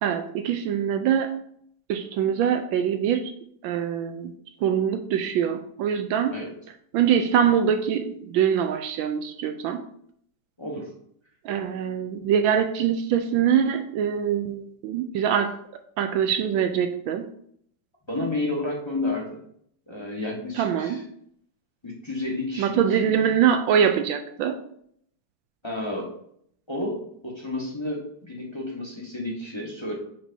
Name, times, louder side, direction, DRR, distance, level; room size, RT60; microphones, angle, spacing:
voice 1, 0.0-1.3 1.9-3.3 3.6-4.3 4.6-6.4 6.9-9.8 11.4-15.6 16.0-17.3 20.6-21.0 22.6-24.6, right 8 dB, 80° right, 7 dB, 1.3 m, -23 dB
voice 2, 10.6-10.9 18.1-19.4 19.9-21.0 21.8-23.0 25.6-26.1 26.7-27.0 27.2-29.9, left 2 dB, 15° left, -3 dB, 1.1 m, -31 dB
8.7 x 5.3 x 2.7 m, 0.67 s
omnidirectional pair, 2.2 m